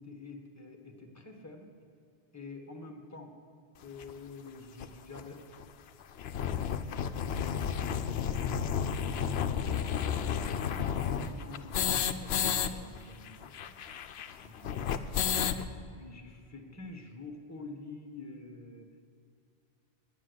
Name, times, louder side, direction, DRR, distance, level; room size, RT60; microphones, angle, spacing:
voice 1, 0.0-1.7 2.3-3.3 3.8-5.4 8.9-13.7 14.4-14.8 15.7-18.9, left 3 dB, 15° left, 4 dB, 1.4 m, -48 dB
sound 1, 4.0-4.1 4.8-4.9 5.1-5.2 5.5-5.6 6.0-12.7 13.0-13.1 13.3-15.6, left 8 dB, 75° left, 0.9 m, -32 dB
10.0 x 9.9 x 8.0 m, 2.4 s
omnidirectional pair, 1.1 m